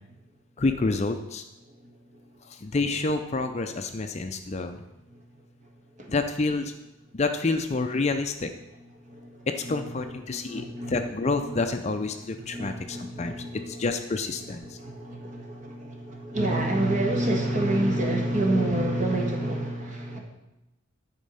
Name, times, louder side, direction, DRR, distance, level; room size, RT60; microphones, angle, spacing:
voice 1, 0.6-1.4 2.5-4.8 6.1-6.7 7.1-8.5 9.6-13.4 13.7-14.8, left 3 dB, 35° left, 6 dB, 0.5 m, -28 dB
voice 2, 1.7-2.3 4.7-5.2 5.6-5.7 5.9-6.1 8.9-14.0 14.4-20.2, right 1 dB, 35° right, 1 dB, 1.4 m, -29 dB
10.5 x 4.5 x 5.5 m, 0.94 s
head